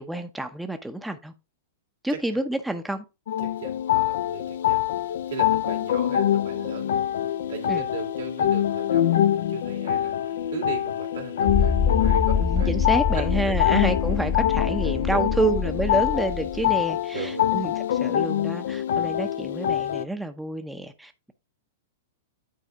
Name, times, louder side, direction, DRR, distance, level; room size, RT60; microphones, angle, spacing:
voice 1, 0.0-1.3 2.0-3.0 7.7-7.8 12.4-21.3, right 1 dB, 5° right, 0.6 m, -29 dB
sound 1, 3.3-20.0, left 11 dB, 70° left, 0.4 m, -25 dB
voice 2, 3.4-4.8 5.3-12.7 13.1-13.8 15.0-15.5 17.1-17.5, right 7 dB, 80° right, 2.5 m, -38 dB
sound 2, 11.5-16.7, left 6 dB, 25° left, 0.9 m, -25 dB
9.2 x 4.1 x 3.5 m
hypercardioid pair, 115°, 0 cm